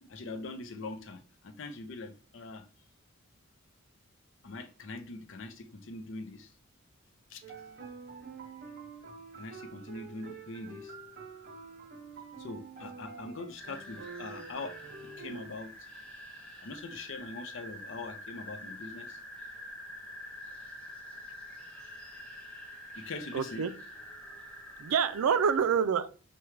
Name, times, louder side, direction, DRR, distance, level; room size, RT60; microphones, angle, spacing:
voice 1, 0.0-2.7 4.4-6.5 7.3-7.4 9.4-10.9 12.4-15.7 16.6-19.2 22.9-23.6, left 3 dB, 60° left, 0.5 m, -42 dB
sound 1, 7.4-15.5, right 5 dB, 40° right, 0.6 m, -47 dB
sound 2, 13.6-25.6, left 1 dB, 5° left, 0.6 m, -46 dB
voice 2, 23.3-23.7 24.8-26.1, right 6 dB, 85° right, 0.4 m, -27 dB
5.8 x 2.2 x 3.1 m
head